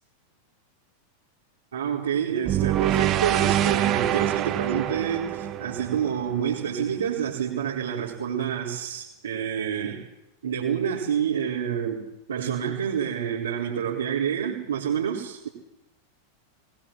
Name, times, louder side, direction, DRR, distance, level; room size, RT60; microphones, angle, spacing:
voice 1, 1.7-10.0 10.4-15.5, right 8 dB, 65° right, -6 dB, 4.3 m, -28 dB
sound 1, 2.4-6.7, right 12 dB, 35° right, 1.2 m, -25 dB
20.5 x 20.0 x 7.7 m, 0.88 s
figure-of-eight pair, 90°, 0 cm